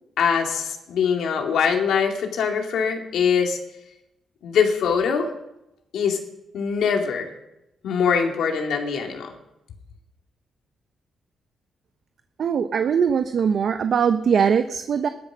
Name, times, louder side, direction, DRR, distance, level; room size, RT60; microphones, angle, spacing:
voice 1, 0.2-3.6 4.4-5.3 5.9-6.2 6.5-7.3 7.8-9.3, left 6 dB, 85° left, 2 dB, 2.4 m, -22 dB
voice 2, 12.4-15.1, right 7 dB, 65° right, 9 dB, 0.8 m, -21 dB
17.0 x 12.0 x 6.3 m, 0.91 s
cardioid pair, 85°, 0 cm